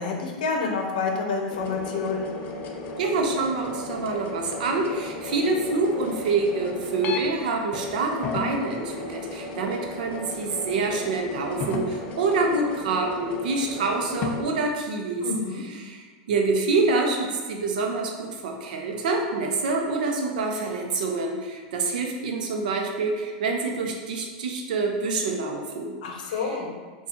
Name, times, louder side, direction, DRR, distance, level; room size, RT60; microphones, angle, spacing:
voice 1, 0.0-2.3 15.2-15.6 26.0-26.7, left 4 dB, 80° left, 1 dB, 0.6 m, -28 dB
sound 1, 1.5-7.3 7.7-14.4, left 3 dB, 35° left, 0.4 m, -34 dB
voice 2, 3.0-15.3 15.5-25.9 26.3-26.6, right 3 dB, 80° right, 2 dB, 0.6 m, -26 dB
4.3 x 2.3 x 2.7 m, 1.4 s
supercardioid pair, 140°, 4 cm